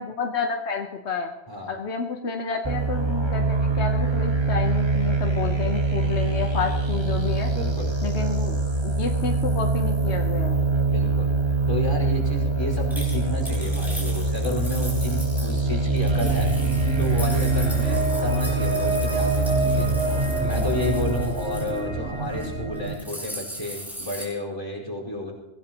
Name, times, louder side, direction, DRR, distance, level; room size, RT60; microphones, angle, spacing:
voice 1, 0.0-1.3 1.7-7.5 8.0-8.6 9.0-10.7, left 5 dB, 85° left, 3 dB, 1.4 m, -29 dB
sound 1, 2.6-21.2, right 3 dB, 25° right, 1.4 m, -24 dB
voice 2, 7.5-7.9 10.8-11.3 11.7-16.5 17.0-19.9 20.4-25.3, left 1 dB, 25° left, -1 dB, 5.0 m, -31 dB
sound 2, 12.9-15.6 16.0-21.8 22.2-22.5 22.8-24.3, equal, ahead, 3.9 m, -39 dB
sound 3, 16.1-22.9, right 3 dB, 70° right, 1.6 m, -28 dB
23.5 x 16.5 x 3.0 m, 0.96 s
omnidirectional pair, 1.1 m